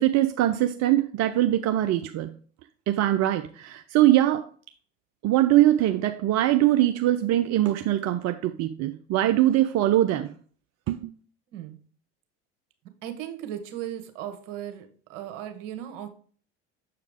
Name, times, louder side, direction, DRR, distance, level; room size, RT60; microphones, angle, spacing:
voice 1, 0.0-2.3 2.9-4.5 5.2-10.3 10.9-11.1, right 14 dB, 45° right, 8 dB, 0.6 m, -22 dB
voice 2, 13.0-16.1, right 11 dB, 65° right, 8 dB, 1.4 m, -37 dB
6.9 x 4.7 x 3.5 m, 0.43 s
hypercardioid pair, 75°, 36 cm